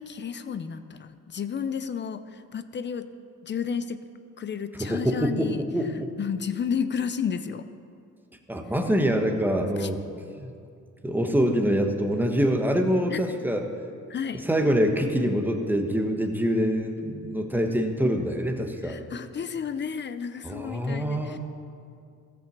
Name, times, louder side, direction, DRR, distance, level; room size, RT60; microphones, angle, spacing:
voice 1, 0.0-3.1 3.4-4.1 4.4-5.6 6.2-7.7 9.8-9.9 13.1-13.2 14.1-14.5 18.8-21.4, left 7 dB, 35° left, 11 dB, 0.6 m, -32 dB
voice 2, 4.8-6.1 8.5-10.0 10.4-10.5 11.0-13.6 14.4-19.0 20.4-21.4, equal, 5° right, 4 dB, 1.2 m, -25 dB
14.0 x 5.9 x 7.4 m, 2.4 s
cardioid pair, 90°, 30 cm